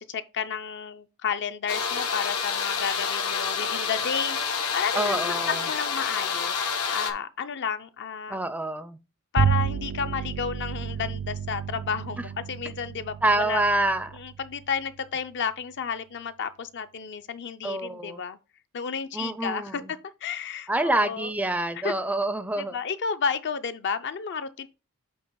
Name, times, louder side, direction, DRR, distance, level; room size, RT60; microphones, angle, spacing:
voice 1, 0.0-6.6 6.9-8.4 9.3-13.6 14.1-18.4 18.7-19.8 20.2-21.3 21.8-21.9 22.6-24.7, left 6 dB, 55° left, 0.5 m, -32 dB
sound 1, 1.7-7.1, left 6 dB, 80° left, 1.0 m, -28 dB
voice 2, 4.9-5.6 8.3-9.0 13.2-14.1 17.6-18.2 19.1-19.8 20.7-22.8, right 2 dB, 5° right, 0.5 m, -26 dB
Bowed string instrument, 9.4-15.0, right 7 dB, 80° right, 0.5 m, -30 dB
8.2 x 2.9 x 4.6 m
head